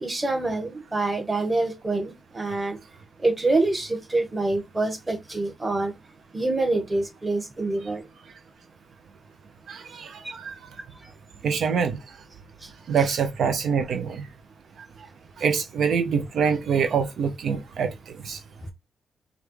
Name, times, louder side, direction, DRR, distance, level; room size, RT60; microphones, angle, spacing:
voice 1, 0.0-2.8 3.2-5.9 6.3-8.0, right 2 dB, 20° right, 1.4 m, -26 dB
voice 2, 9.7-10.7 11.4-12.2 12.9-14.3 14.8-15.1 15.4-18.4, right 6 dB, 65° right, 0.5 m, -26 dB
5.0 x 2.3 x 3.2 m
cardioid pair, 125°, 0 cm